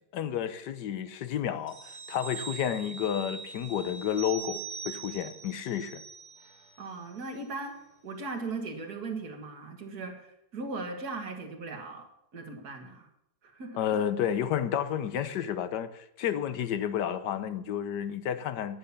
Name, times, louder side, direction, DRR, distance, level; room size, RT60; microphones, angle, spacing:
voice 1, 0.1-6.0 13.8-18.8, left 9 dB, 75° left, 1.4 m, -31 dB
sound 1, 1.7-6.8 7.1-7.3, right 6 dB, 35° right, 0.8 m, -42 dB
voice 2, 6.8-12.1 12.3-13.1 13.4-13.8, right 3 dB, 60° right, 2.1 m, -38 dB
10.0 x 9.8 x 6.9 m
omnidirectional pair, 1.9 m